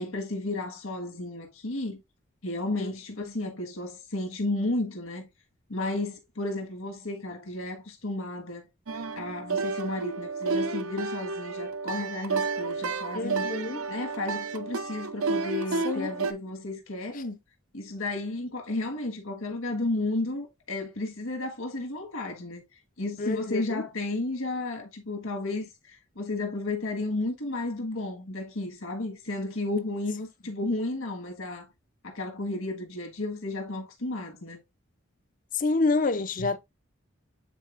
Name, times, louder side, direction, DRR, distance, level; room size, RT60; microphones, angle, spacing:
voice 1, 0.0-2.0 2.4-5.3 5.7-8.7 9.2-13.5 13.9-17.4 17.7-22.6 23.0-31.7 32.0-34.6 36.4-36.5, left 2 dB, 75° left, 1.6 m, -33 dB
sound 1, 8.9-16.3, right 4 dB, 80° right, 0.7 m, -31 dB
voice 2, 13.1-13.8 15.8-16.1 23.2-23.8 35.5-36.6, left 3 dB, 40° left, 0.5 m, -27 dB
9.1 x 4.1 x 2.5 m
head